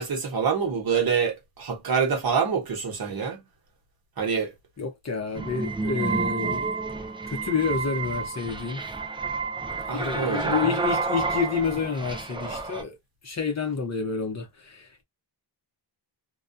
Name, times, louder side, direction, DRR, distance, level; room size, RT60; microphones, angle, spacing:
voice 1, 0.0-3.4 4.2-4.5 9.9-10.7, right 6 dB, 50° right, 1.0 m, -26 dB
voice 2, 4.8-6.7 7.3-8.8 9.9-12.9 13.2-15.0, left 5 dB, 35° left, 0.7 m, -29 dB
sound 1, 5.4-12.8, right 4 dB, 10° right, 0.4 m, -30 dB
2.3 x 2.2 x 2.5 m
wide cardioid pair, 125°, 46 cm